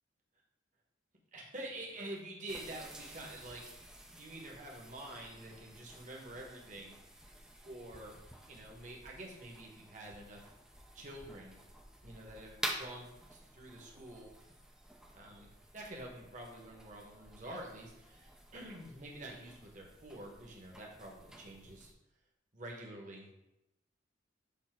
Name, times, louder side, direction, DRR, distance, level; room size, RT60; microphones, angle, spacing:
voice 1, 1.3-3.6 4.2-7.0 7.6-8.2 8.5-10.5 10.9-11.6 12.0-14.3 15.1-21.9 22.5-23.3, right 1 dB, 40° right, -1 dB, 1.3 m, -47 dB
sound 1, 2.5-21.9, right 1 dB, 5° right, 0.6 m, -50 dB
7.1 x 2.9 x 5.8 m, 0.91 s
head